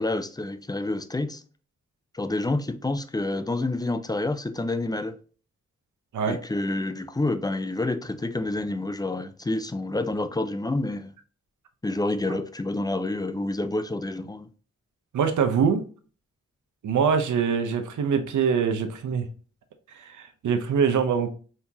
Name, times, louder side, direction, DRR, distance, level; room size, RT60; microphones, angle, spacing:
voice 1, 0.0-1.4 2.1-5.1 6.3-11.1 11.8-14.5, left 2 dB, 15° left, 0.5 m, -28 dB
voice 2, 15.1-15.8 16.8-19.3 20.0-21.3, right 6 dB, 85° right, 0.7 m, -24 dB
4.4 x 3.5 x 2.8 m
cardioid pair, 65°, 30 cm